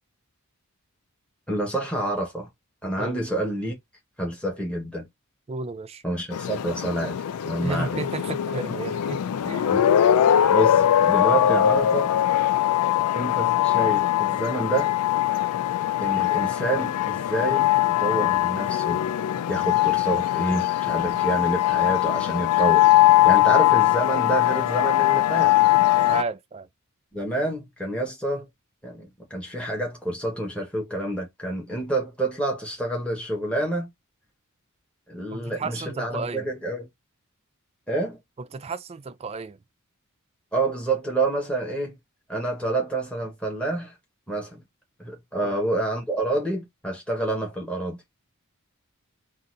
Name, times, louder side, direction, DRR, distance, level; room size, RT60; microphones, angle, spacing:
voice 1, 1.5-2.5 2.8-3.7 4.2-5.1 6.0-8.0 9.7-10.1 10.5-12.1 13.1-14.9 16.0-17.7 18.0-19.0 19.5-25.5 27.1-28.5 28.8-33.9 35.1-36.9 37.9-38.2 40.5-42.0 42.3-43.9 44.3-44.6 45.0-48.0, right 2 dB, 5° left, 1.3 m, -28 dB
voice 2, 5.5-6.0 7.6-9.2 9.5-9.7 26.0-26.7 35.3-36.5 38.4-39.6 45.4-45.6, right 4 dB, 25° right, 0.4 m, -33 dB
sound 1, 6.3-26.2, left 12 dB, 90° left, 0.3 m, -21 dB
3.9 x 2.5 x 2.5 m
head